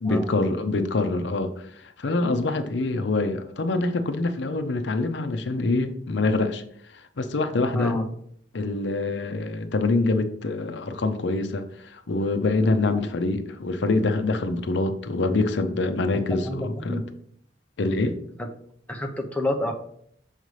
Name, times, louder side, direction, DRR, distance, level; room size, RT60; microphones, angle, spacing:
voice 1, 0.0-1.5 2.0-6.6 7.2-8.0 8.5-11.7 11.9-17.0 17.8-18.2, left 2 dB, 75° left, 0.6 m, -25 dB
voice 2, 7.7-8.1 12.9-13.2 16.4-17.0 18.4-18.5 18.9-19.7, left 1 dB, 10° left, 0.6 m, -28 dB
6.4 x 5.3 x 3.2 m
head